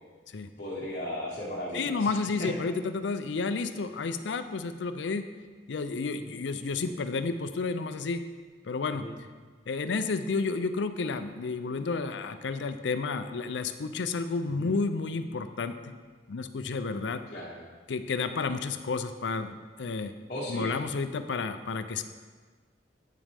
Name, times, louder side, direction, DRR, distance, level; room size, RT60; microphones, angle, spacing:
voice 1, 0.6-2.5 9.0-9.1 14.6-14.7 17.3-17.6 20.3-20.7, left 1 dB, 45° left, -7 dB, 1.1 m, -36 dB
voice 2, 1.7-5.2 5.7-8.2 8.6-9.1 9.7-15.9 16.3-17.2 17.9-20.1 20.5-22.0, left 4 dB, 75° left, 10 dB, 0.5 m, -31 dB
8.6 x 7.1 x 3.4 m, 1.4 s
head